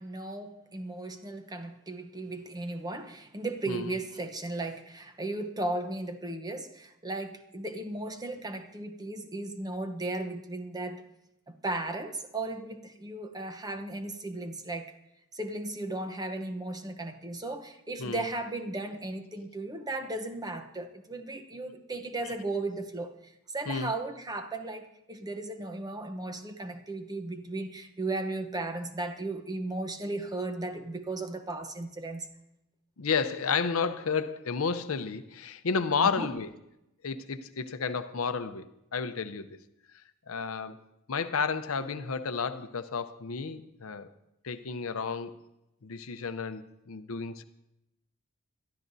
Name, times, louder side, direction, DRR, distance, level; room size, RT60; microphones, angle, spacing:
voice 1, 0.0-11.0 11.5-14.9 15.3-23.1 23.5-32.3 36.0-36.3, right 2 dB, 20° right, 0.8 m, -36 dB
voice 2, 33.0-36.5 37.0-39.6 40.3-40.8 41.1-44.1 44.4-45.3 45.8-47.4, left 5 dB, 75° left, 0.7 m, -32 dB
22.5 x 12.5 x 2.7 m
head